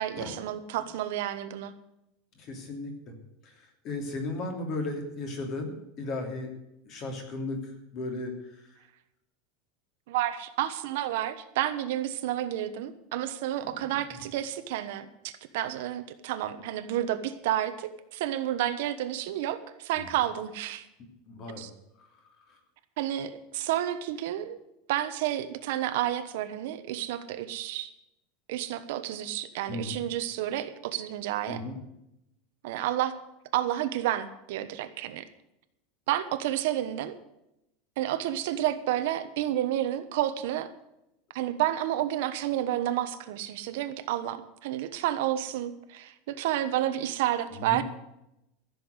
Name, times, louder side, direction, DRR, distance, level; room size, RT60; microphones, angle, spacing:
voice 1, 0.0-1.7 10.1-20.9 21.6-21.7 23.0-24.6 24.9-27.9 28.5-31.6 32.6-33.1 33.5-35.2 36.1-37.1 38.0-40.7 41.3-47.8, right 12 dB, 60° right, 10 dB, 1.1 m, -30 dB
voice 2, 2.4-2.9 3.8-5.7 6.0-6.5 6.8-7.6 7.9-8.3 20.0-20.1 21.3-21.7 29.7-30.0 31.5-31.8 47.6-47.8, left 2 dB, 30° left, 3 dB, 2.9 m, -34 dB
14.5 x 7.0 x 9.7 m, 0.85 s
supercardioid pair, 175°, 0 cm